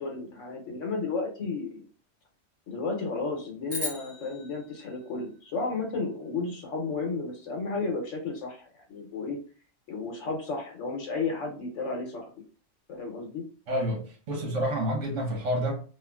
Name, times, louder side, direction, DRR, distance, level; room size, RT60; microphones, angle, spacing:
voice 1, 0.0-1.9 2.7-9.4 9.9-12.3 12.9-13.4, left 3 dB, 85° left, 0 dB, 1.1 m, -33 dB
sound 1, 3.7-6.1, left 2 dB, 15° right, 1.3 m, -39 dB
voice 2, 13.7-15.8, equal, 75° right, 0 dB, 1.3 m, -29 dB
3.0 x 2.5 x 2.2 m, 0.39 s
omnidirectional pair, 1.3 m